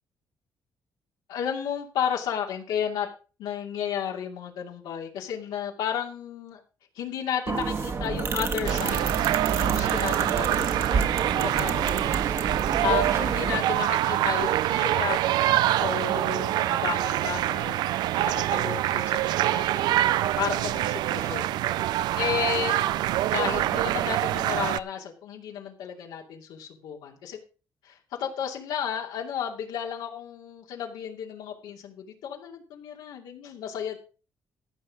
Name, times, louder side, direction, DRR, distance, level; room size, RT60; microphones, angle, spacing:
voice 1, 1.3-3.1 3.4-6.6 6.9-9.1 9.6-12.1 12.8-15.2 15.8-17.8 18.2-21.6 22.2-22.8 23.3-27.4 27.8-34.0, left 8 dB, 85° left, 0 dB, 2.6 m, -33 dB
sound 1, 7.5-13.6, right 5 dB, 40° right, 1.7 m, -29 dB
sound 2, 8.6-24.8, right 14 dB, 80° right, 0.5 m, -25 dB
14.5 x 5.5 x 6.4 m, 0.35 s
cardioid pair, 100°, 7 cm